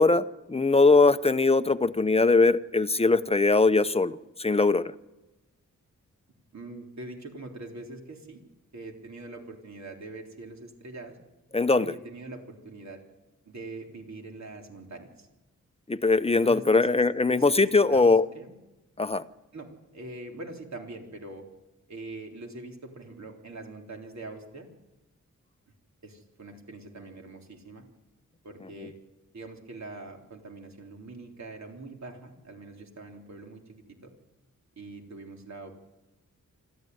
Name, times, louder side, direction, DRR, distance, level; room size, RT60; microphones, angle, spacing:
voice 1, 0.0-4.9 11.5-11.9 15.9-18.2 19.0-19.2, left 3 dB, 20° left, 13 dB, 0.8 m, -21 dB
voice 2, 6.5-8.4 8.7-11.2 11.8-13.0 13.5-15.3 16.3-18.5 19.5-21.5 21.9-24.7 26.0-27.9 28.4-29.0 29.3-34.1 34.8-35.7, right 2 dB, 60° right, 2 dB, 3.7 m, -43 dB
26.0 x 14.0 x 9.4 m, 1.0 s
wide cardioid pair, 95°, 31 cm